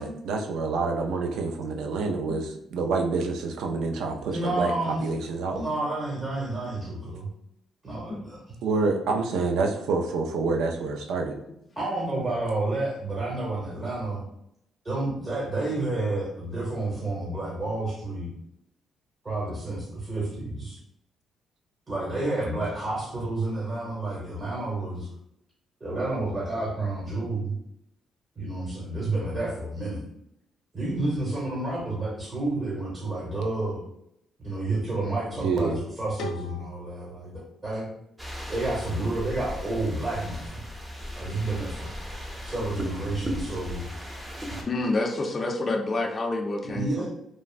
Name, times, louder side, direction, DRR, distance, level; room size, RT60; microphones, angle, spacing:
voice 1, 0.0-5.6 8.6-11.4 34.8-34.9 35.4-35.8, right 4 dB, 85° right, 3 dB, 0.3 m, -27 dB
voice 2, 4.3-5.0 5.5-7.3 7.8-8.6 11.8-14.2 14.8-18.3 19.2-20.8 21.9-25.1 25.8-27.5 28.4-30.0 30.7-33.8 34.4-37.9 38.5-40.6 41.2-41.9 42.4-43.8 46.7-47.1, right 2 dB, 35° right, -5 dB, 1.0 m, -30 dB
sound 1, 36.2-39.0, left 1 dB, 85° left, 0.4 m, -43 dB
sound 2, 38.2-44.6, equal, 10° right, 0.6 m, -37 dB
voice 3, 44.7-47.0, left 2 dB, 35° left, 3 dB, 0.4 m, -28 dB
3.3 x 2.0 x 2.4 m, 0.77 s
cardioid pair, 90°, 0 cm